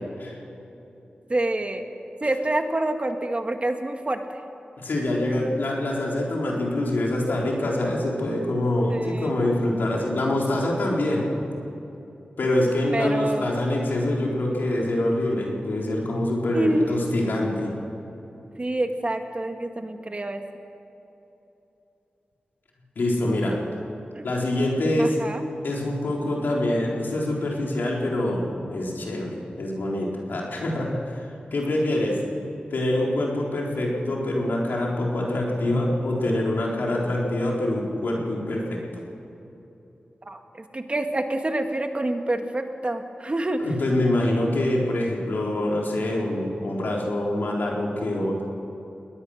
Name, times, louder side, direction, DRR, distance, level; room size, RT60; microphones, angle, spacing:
voice 1, 1.3-1.9 2.2-4.4 8.9-9.3 12.9-13.6 16.5-16.9 18.6-20.4 24.2-24.3 25.0-25.4 40.3-40.4 40.7-43.8, right 1 dB, 35° right, 5 dB, 1.9 m, -27 dB
voice 2, 4.8-11.3 12.4-17.7 23.0-23.6 24.2-25.2 25.6-29.3 29.6-31.3 31.5-32.2 32.7-38.8 43.6-48.4, left 1 dB, 85° left, -2 dB, 4.1 m, -25 dB
21.5 x 19.5 x 6.5 m, 3.0 s
cardioid pair, 50°, 3 cm